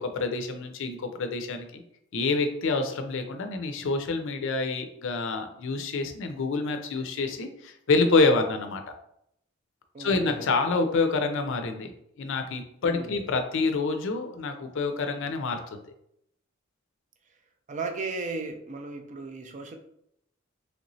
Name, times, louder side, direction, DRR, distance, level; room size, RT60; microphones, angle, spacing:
voice 1, 0.0-1.8 2.1-8.8 10.0-15.8, left 3 dB, 65° left, 6 dB, 0.5 m, -27 dB
voice 2, 9.9-10.5 12.8-13.3 17.7-19.8, right 3 dB, 35° right, 4 dB, 0.4 m, -36 dB
3.1 x 3.0 x 2.6 m, 0.74 s
head